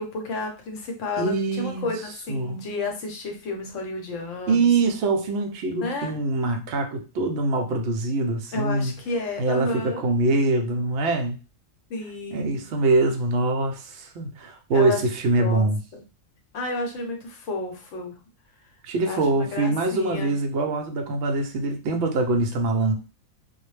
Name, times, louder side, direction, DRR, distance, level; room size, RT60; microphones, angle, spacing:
voice 1, 0.0-4.7 5.8-6.2 8.5-10.0 11.9-12.7 14.7-15.0 15.4-16.0 16.5-18.2 19.1-20.4, left 2 dB, 70° left, 2 dB, 1.0 m, -31 dB
voice 2, 1.2-2.0 2.3-2.6 4.5-8.9 9.4-11.4 12.3-15.8 18.8-22.9, right 3 dB, 65° right, 4 dB, 0.8 m, -24 dB
2.4 x 2.0 x 3.1 m, 0.32 s
omnidirectional pair, 1.4 m